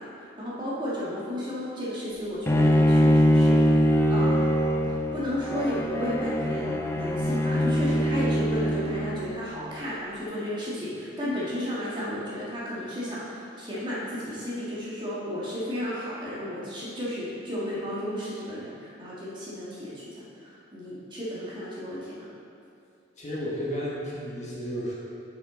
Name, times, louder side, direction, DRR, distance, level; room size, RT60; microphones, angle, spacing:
voice 1, 0.0-4.5 5.1-22.2, equal, 25° right, -8 dB, 1.6 m, -33 dB
Bowed string instrument, 2.5-9.5, equal, 15° left, 0.4 m, -23 dB
voice 2, 23.2-24.9, equal, 35° left, -6 dB, 1.3 m, -32 dB
8.2 x 5.7 x 3.8 m, 2.6 s
head